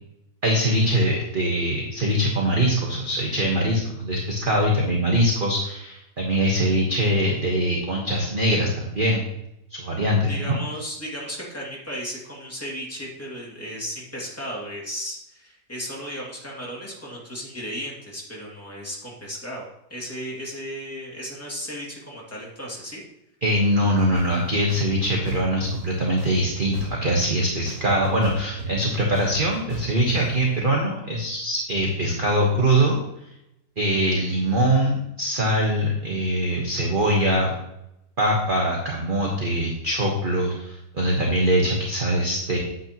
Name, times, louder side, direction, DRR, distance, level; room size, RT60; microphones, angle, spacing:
voice 1, 0.4-9.2 9.7-10.6 23.4-33.0 33.8-37.5 38.2-42.6, right 1 dB, 35° right, -1 dB, 1.3 m, -22 dB
voice 2, 10.3-23.0, equal, 10° left, -4 dB, 2.3 m, -35 dB
sound 1, 24.1-24.2 24.7-25.7 26.2-27.3 27.7-30.2, right 2 dB, 65° right, 3.9 m, -35 dB
9.0 x 8.5 x 3.0 m, 0.84 s
omnidirectional pair, 1.8 m